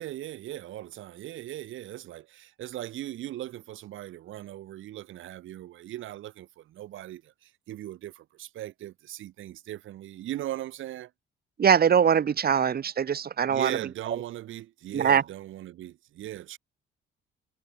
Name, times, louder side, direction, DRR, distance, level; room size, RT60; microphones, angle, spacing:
voice 1, 0.0-11.1 13.5-16.6, right 13 dB, 80° right, 4.0 m, -38 dB
voice 2, 11.6-13.8 14.9-15.2, right 7 dB, 50° right, 3.8 m, -22 dB
cardioid pair, 90°, 20 cm